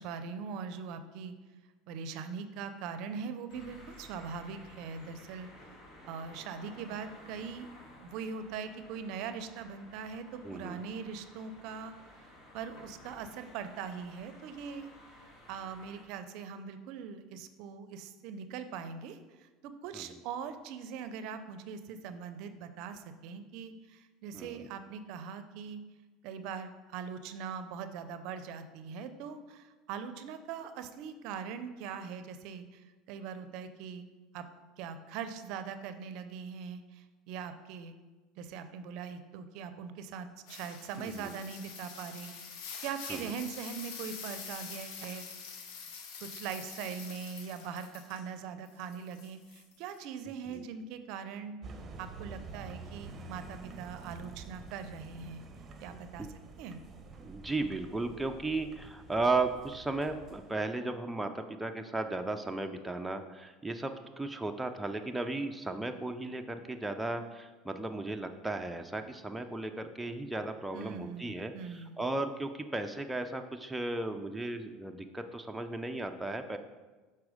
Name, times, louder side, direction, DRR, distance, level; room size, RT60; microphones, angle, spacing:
voice 1, 0.0-1.3 1.9-5.5 6.1-7.7 8.0-11.9 12.5-14.9 15.5-25.8 26.2-34.0 34.3-34.5 34.8-37.9 38.4-42.3 42.8-45.3 46.2-51.6 52.0-55.4 55.8-56.3 56.6-56.8 70.7-72.0, right 6 dB, 65° right, 10 dB, 0.5 m, -41 dB
sound 1, 3.5-16.0, left 1 dB, 55° left, 1.9 m, -54 dB
voice 2, 10.4-10.8 19.9-20.0 24.3-24.6 41.0-41.3 43.1-43.3 50.4-50.6 56.2-56.3 57.2-76.6, right 2 dB, 5° right, 5 dB, 0.4 m, -35 dB
sound 2, 40.5-48.3 48.7-50.0 50.5-50.6, left 6 dB, 75° left, 0.8 m, -46 dB
sound 3, 51.6-60.5, right 3 dB, 30° right, 0.7 m, -48 dB
6.1 x 4.3 x 4.9 m, 1.3 s
supercardioid pair, 115°, 0 cm